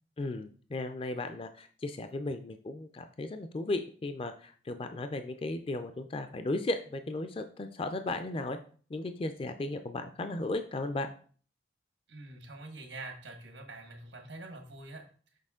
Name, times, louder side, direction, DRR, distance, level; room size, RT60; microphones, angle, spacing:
voice 1, 0.2-8.6 8.9-11.1, left 2 dB, 30° left, 9 dB, 0.4 m, -35 dB
voice 2, 12.1-15.1, right 2 dB, 85° right, 4 dB, 1.5 m, -45 dB
6.5 x 4.9 x 3.7 m, 0.43 s
head